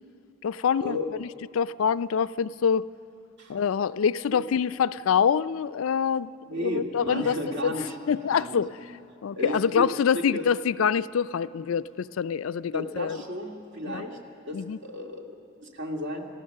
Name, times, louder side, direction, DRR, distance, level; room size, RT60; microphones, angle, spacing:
voice 1, 0.4-1.3 1.5-2.9 3.5-7.4 7.6-7.7 8.1-8.7 9.2-13.2 13.9-14.0 14.5-14.8, left 7 dB, 85° left, 15 dB, 0.4 m, -25 dB
voice 2, 6.5-8.0 8.3-8.6 9.4-10.4 12.7-14.2 14.5-16.3, equal, 60° right, 1 dB, 2.2 m, -34 dB
29.5 x 14.5 x 6.5 m, 2.7 s
head